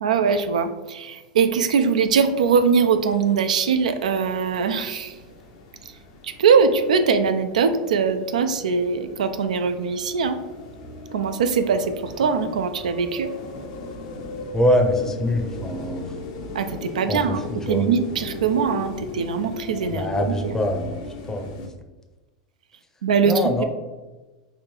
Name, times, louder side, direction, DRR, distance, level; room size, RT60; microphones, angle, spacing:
voice 1, 0.0-5.2 6.2-10.4 11.1-13.3 16.5-20.5 23.0-23.6, right 6 dB, 90° right, 9 dB, 0.3 m, -22 dB
sound 1, 2.0-21.7, left 2 dB, 65° left, 0.7 m, -38 dB
voice 2, 14.5-16.1 17.1-17.2 17.7-17.9 19.9-21.5 23.2-23.6, left 1 dB, 15° left, 4 dB, 0.6 m, -23 dB
3.2 x 2.5 x 4.4 m, 1.2 s
hypercardioid pair, 110°, 4 cm